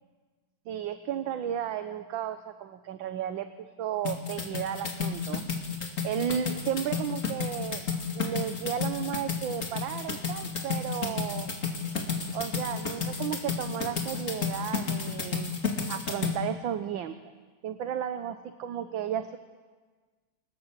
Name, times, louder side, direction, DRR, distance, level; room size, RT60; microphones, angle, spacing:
voice 1, 0.7-3.5 3.8-5.4 6.0-7.8 8.1-11.5 12.3-15.5 15.9-17.2 17.6-19.4, right 9 dB, 70° right, 9 dB, 1.5 m, -33 dB
sound 1, 4.1-16.3, left 5 dB, 35° left, 2.8 m, -32 dB
28.0 x 18.5 x 7.4 m, 1.4 s
omnidirectional pair, 2.4 m